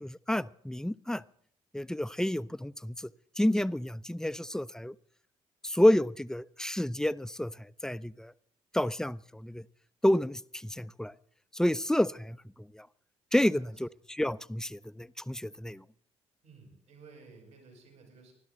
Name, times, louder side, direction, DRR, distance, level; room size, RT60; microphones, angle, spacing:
voice 1, 0.0-1.2 1.7-3.1 3.4-4.9 5.6-8.3 8.7-9.6 10.0-11.1 11.5-12.4 12.7-12.9 13.3-15.8, left 1 dB, 5° left, 16 dB, 0.6 m, -29 dB
voice 2, 16.4-18.3, right 4 dB, 75° right, 1 dB, 7.8 m, -54 dB
28.5 x 12.5 x 3.9 m, 0.64 s
figure-of-eight pair, 40°, 16 cm